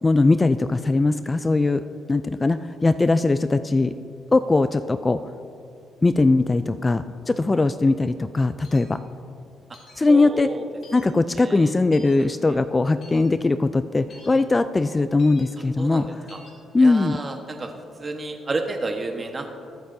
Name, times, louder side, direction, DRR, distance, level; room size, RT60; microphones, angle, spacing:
voice 1, 0.0-3.9 4.3-5.2 6.0-9.0 10.0-10.5 10.9-16.1 16.7-17.2, left 3 dB, 20° left, 11 dB, 0.3 m, -20 dB
sound 1, 8.6-8.9 9.7-10.0 10.8-11.1 11.9-12.2 13.0-13.2 14.1-14.3 15.2-15.4 16.3-16.5, left 3 dB, 65° left, 3.0 m, -48 dB
voice 2, 10.1-10.6 11.4-11.7 12.2-12.6 15.8-16.4 16.8-17.7 18.0-19.5, right 3 dB, 30° right, 4 dB, 1.3 m, -31 dB
21.5 x 8.4 x 2.7 m, 2.5 s
cardioid pair, 90°, 0 cm